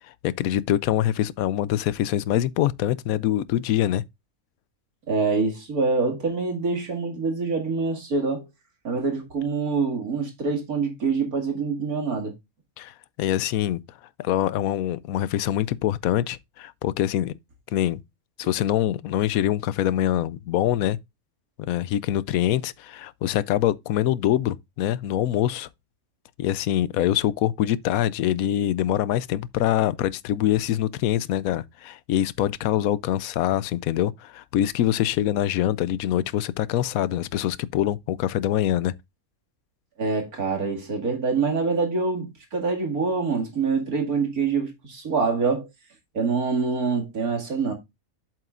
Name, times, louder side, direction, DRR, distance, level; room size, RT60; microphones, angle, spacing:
voice 1, 0.2-4.0 12.8-13.8 14.2-17.3 17.7-18.0 18.4-21.0 21.6-25.7 26.4-38.9, left 12 dB, 80° left, 1.0 m, -24 dB
voice 2, 5.1-8.5 8.8-12.3 40.0-45.7 46.1-47.7, right 4 dB, 90° right, 2.7 m, -25 dB
7.8 x 7.5 x 2.4 m
omnidirectional pair, 1.5 m